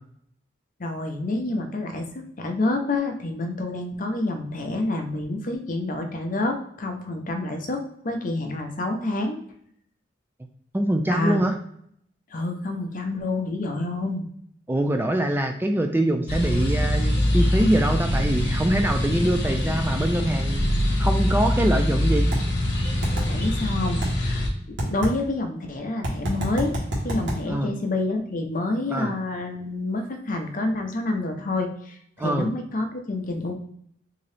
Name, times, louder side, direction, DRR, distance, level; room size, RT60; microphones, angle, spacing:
voice 1, 0.8-9.4 11.1-11.4 12.3-14.2 23.3-24.4 24.8-26.7 27.0-33.5, left 2 dB, 45° left, 4 dB, 0.6 m, -28 dB
voice 2, 10.7-11.5 14.7-20.7 21.0-22.3 27.5-27.7 28.9-29.1 32.2-32.5, right 1 dB, 10° right, 5 dB, 0.3 m, -24 dB
sound 1, 16.3-24.5, left 1 dB, 70° left, 1.0 m, -24 dB
sound 2, 22.3-22.4 23.0-23.3 24.0-24.1 24.8-25.1 26.0-27.4, right 1 dB, 80° right, 1.4 m, -26 dB
3.8 x 2.7 x 3.3 m, 0.68 s
head